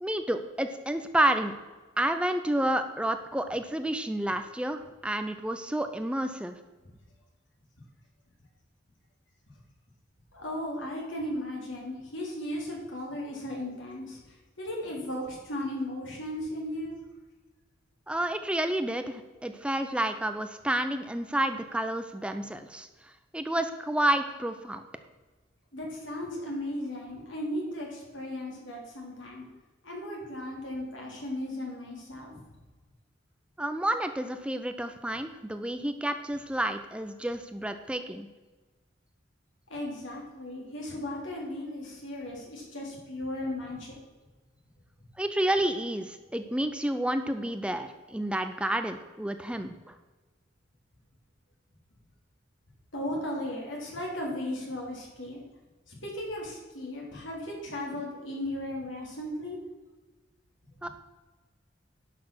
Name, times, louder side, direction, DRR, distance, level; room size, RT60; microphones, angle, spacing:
voice 1, 0.0-1.5 2.0-6.5 18.1-24.8 33.6-38.3 45.2-50.0 60.8-60.9, right 1 dB, 5° right, 8 dB, 0.5 m, -30 dB
voice 2, 10.3-14.2 14.6-17.0 25.7-29.4 29.8-32.4 39.7-44.0 52.9-55.4 55.9-59.6, left 1 dB, 90° left, -2 dB, 3.6 m, -36 dB
10.5 x 6.2 x 6.2 m, 1.3 s
head